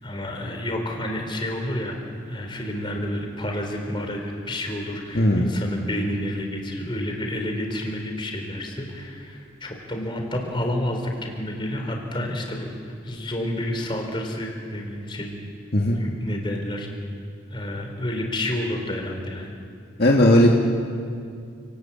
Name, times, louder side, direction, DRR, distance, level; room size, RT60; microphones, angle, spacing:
voice 1, 0.0-12.7 13.0-15.4 16.0-16.9 17.5-19.5, left 1 dB, 25° left, 2 dB, 4.0 m, -29 dB
voice 2, 5.1-5.5 15.7-16.0 20.0-20.5, left 1 dB, 55° left, -1 dB, 2.0 m, -17 dB
29.5 x 19.5 x 8.8 m, 2.3 s
head